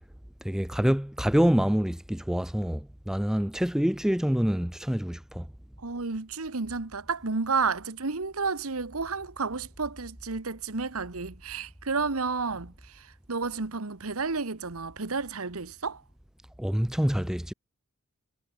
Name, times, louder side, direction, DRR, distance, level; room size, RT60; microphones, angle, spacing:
voice 1, 0.4-5.5 16.6-17.5, equal, ahead, 0.3 m, -26 dB
voice 2, 5.8-16.0, right 4 dB, 80° right, 1.4 m, -31 dB
head